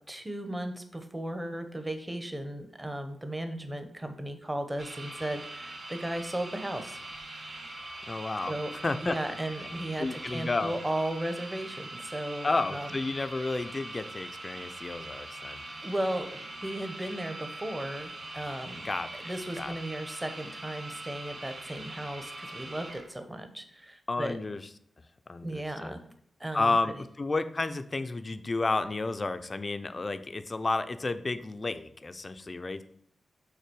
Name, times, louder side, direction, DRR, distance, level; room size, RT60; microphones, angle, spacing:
voice 1, 0.1-7.0 8.5-8.7 9.0-12.9 15.8-18.9 19.2-24.4 25.4-26.0 26.4-27.0, right 1 dB, 15° right, 8 dB, 0.8 m, -35 dB
sound 1, 4.8-23.1, right 2 dB, 40° right, 2.0 m, -42 dB
voice 2, 8.1-8.5 8.8-9.2 10.0-10.7 12.4-15.6 18.8-19.7 24.1-24.6 25.3-26.0 26.5-32.8, left 3 dB, 35° left, 10 dB, 0.5 m, -31 dB
5.7 x 3.9 x 6.1 m, 0.67 s
wide cardioid pair, 105°, 0 cm